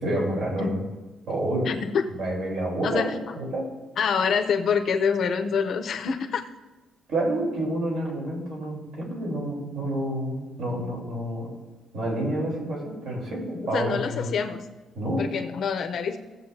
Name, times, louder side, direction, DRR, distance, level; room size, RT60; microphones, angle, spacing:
voice 1, 0.0-0.8 1.3-1.7 2.1-3.7 7.1-11.5 11.9-14.3 15.0-15.3, right 1 dB, 70° right, -2 dB, 3.8 m, -28 dB
voice 2, 2.8-3.4 4.0-6.4 13.7-14.7 15.2-16.2, left 6 dB, 50° left, 6 dB, 0.7 m, -26 dB
17.5 x 7.4 x 2.8 m, 1.2 s
cardioid pair, 170°, 0 cm